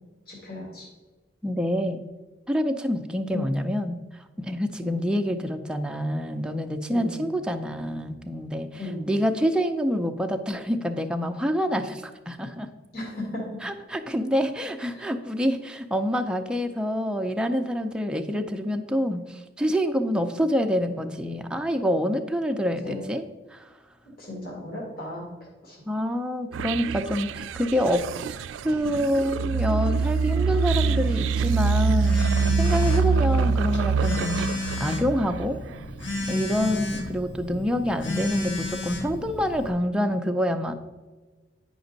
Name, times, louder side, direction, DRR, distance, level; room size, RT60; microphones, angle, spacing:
voice 1, 0.3-0.9 3.3-3.5 4.8-4.9 6.9-7.2 8.8-9.1 12.9-13.4 14.9-15.0 22.8-23.0 24.2-25.3 25.6-25.8 33.4-33.6 36.6-36.8, left 2 dB, 50° left, -2 dB, 2.0 m, -35 dB
voice 2, 1.4-2.0 2.5-4.0 4.4-12.7 13.6-23.3 23.5-23.6 25.9-28.0 28.6-32.3 32.6-34.4 34.8-35.6 36.3-40.8, equal, 5° right, 4 dB, 0.4 m, -26 dB
sound 1, 26.5-35.7, right 5 dB, 80° right, 0.3 m, -25 dB
Telephone, 31.2-39.7, left 2 dB, 80° left, 1.3 m, -33 dB
9.6 x 5.1 x 3.9 m, 1.3 s
head